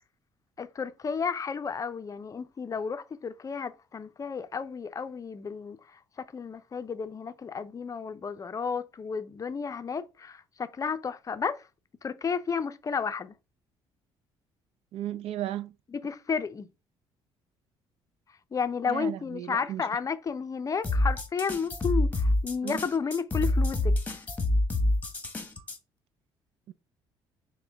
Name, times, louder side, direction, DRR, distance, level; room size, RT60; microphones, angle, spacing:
voice 1, 0.6-5.8 6.2-11.7 12.0-13.3 15.9-16.7 18.5-24.2, left 6 dB, 30° left, 0.5 m, -32 dB
voice 2, 14.9-15.7 18.9-19.9 22.6-22.8 26.7-26.8, right 12 dB, 70° right, 0.4 m, -35 dB
sound 1, 20.8-25.8, left 1 dB, 15° left, 0.9 m, -27 dB
6.0 x 2.1 x 3.4 m
supercardioid pair, 75°, 11 cm